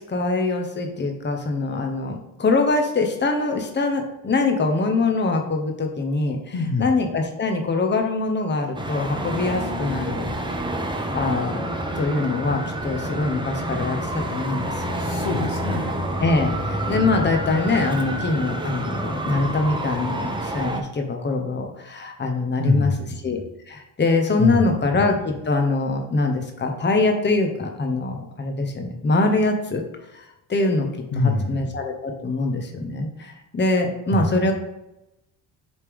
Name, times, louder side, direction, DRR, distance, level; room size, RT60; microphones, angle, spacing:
voice 1, 0.1-10.3 11.1-14.7 16.2-22.9 23.2-23.4 23.7-29.8 30.1-30.9 31.2-34.5, left 3 dB, 20° left, 4 dB, 1.0 m, -23 dB
voice 2, 6.5-6.9 15.0-15.9 22.6-23.4 24.4-24.7 31.1-31.7 34.1-34.4, left 3 dB, 45° left, -1 dB, 1.5 m, -25 dB
Traffic noise roadway noise, 8.7-20.8, right 1 dB, 10° right, 1.0 m, -28 dB
8.2 x 3.4 x 3.6 m, 0.90 s
hypercardioid pair, 60°, 49 cm